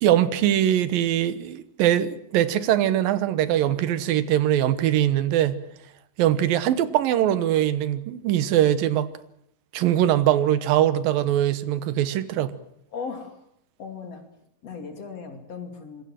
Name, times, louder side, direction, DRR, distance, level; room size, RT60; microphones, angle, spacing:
voice 1, 0.0-5.6 6.2-9.1 9.7-12.5, right 11 dB, 85° right, 2.9 m, -22 dB
voice 2, 12.9-13.4 13.8-14.2 14.6-16.0, left 5 dB, 50° left, 3.8 m, -37 dB
26.0 x 22.0 x 7.6 m
omnidirectional pair, 3.9 m